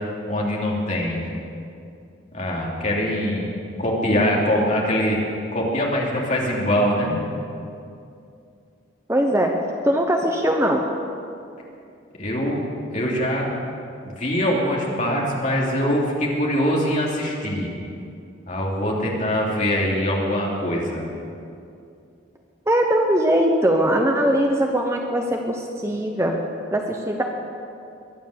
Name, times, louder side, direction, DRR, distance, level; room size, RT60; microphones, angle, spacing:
voice 1, 0.3-1.2 2.3-3.5 3.8-5.2 5.5-7.2 12.2-12.6 12.9-13.5 14.0-17.7 18.5-21.0, equal, 40° left, -3 dB, 3.0 m, -23 dB
voice 2, 9.1-9.5 9.8-10.8 22.7-26.4 26.7-27.2, right 1 dB, 15° right, 2 dB, 0.9 m, -20 dB
22.5 x 9.3 x 6.8 m, 2.5 s
head